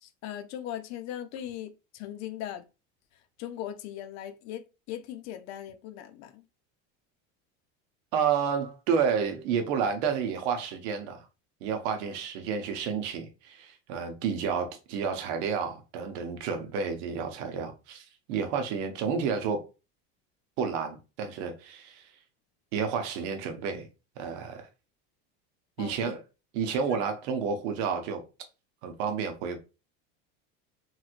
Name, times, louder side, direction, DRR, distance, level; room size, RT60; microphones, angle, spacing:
voice 1, 0.0-2.6 3.4-6.4 25.8-26.2 26.9-27.0, left 11 dB, 50° left, 0.5 m, -39 dB
voice 2, 8.1-11.3 11.6-19.6 20.6-22.1 22.7-23.9 24.2-24.7 25.8-26.2 26.5-28.2 28.8-29.6, right 6 dB, 80° right, 0.8 m, -30 dB
3.2 x 3.0 x 2.4 m
supercardioid pair, 125°, 34 cm